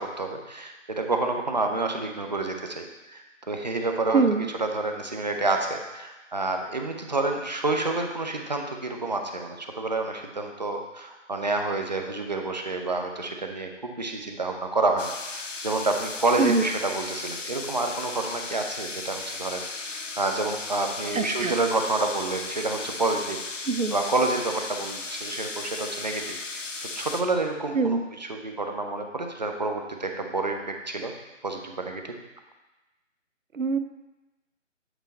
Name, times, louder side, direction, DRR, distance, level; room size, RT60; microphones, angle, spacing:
voice 1, 0.0-4.2 4.6-26.7 27.0-31.1 31.4-32.1, right 2 dB, 35° right, 4 dB, 0.6 m, -29 dB
voice 2, 4.1-4.5 16.4-16.6 21.1-21.5 23.7-24.0 27.7-28.0 33.5-33.8, right 4 dB, 90° right, 9 dB, 0.6 m, -23 dB
sound 1, 15.0-27.2, left 3 dB, 70° left, 0.8 m, -36 dB
8.1 x 4.4 x 3.9 m, 1.1 s
figure-of-eight pair, 150°, 38 cm